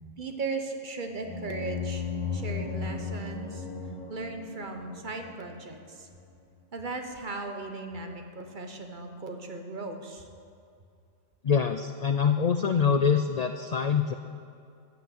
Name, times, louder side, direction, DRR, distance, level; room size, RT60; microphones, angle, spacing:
voice 1, 0.2-2.1 2.3-3.7 4.1-6.1 6.7-10.3, right 3 dB, 45° right, 5 dB, 1.1 m, -37 dB
sound 1, 1.2-5.8, left 5 dB, 40° left, 1.2 m, -36 dB
voice 2, 11.4-14.1, left 6 dB, 65° left, 7 dB, 0.4 m, -25 dB
14.0 x 6.0 x 7.6 m, 2.5 s
omnidirectional pair, 1.3 m